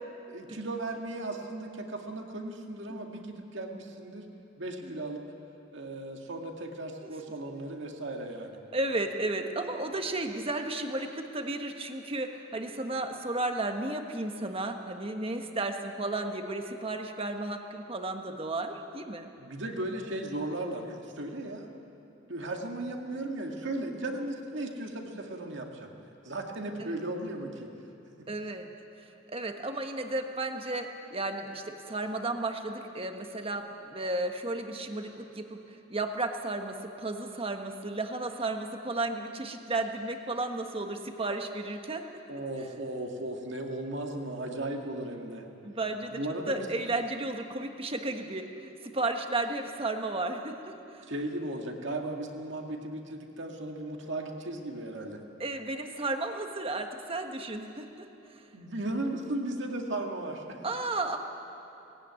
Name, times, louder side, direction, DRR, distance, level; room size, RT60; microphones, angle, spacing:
voice 1, 0.3-4.3 4.6-5.3 5.7-8.6 19.4-21.7 22.3-25.9 26.2-27.7 28.2-28.3 42.3-45.5 46.1-46.7 51.1-55.2 58.5-60.6, right 1 dB, 65° right, 2 dB, 2.2 m, -36 dB
voice 2, 8.7-19.3 26.8-27.0 28.3-28.7 29.0-42.0 45.6-46.2 46.5-50.6 50.9-51.1 55.4-58.1 58.3-58.4 60.6-61.2, right 2 dB, 30° right, 5 dB, 1.4 m, -33 dB
19.0 x 16.5 x 9.6 m, 2.9 s
head